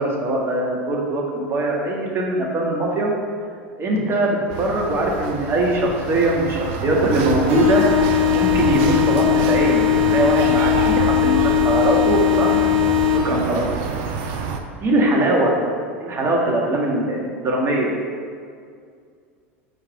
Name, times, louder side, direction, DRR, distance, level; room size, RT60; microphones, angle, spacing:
voice 1, 0.0-3.1 3.8-7.8 8.3-12.7 13.1-13.7 14.8-15.5 16.0-17.9, right 1 dB, 35° right, -1 dB, 1.6 m, -21 dB
sound 1, 4.5-14.6, right 5 dB, 60° right, 0.7 m, -27 dB
sound 2, 7.5-13.5, left 11 dB, 80° right, 1.3 m, -19 dB
5.0 x 4.7 x 5.8 m, 2.2 s
hypercardioid pair, 90°, 7 cm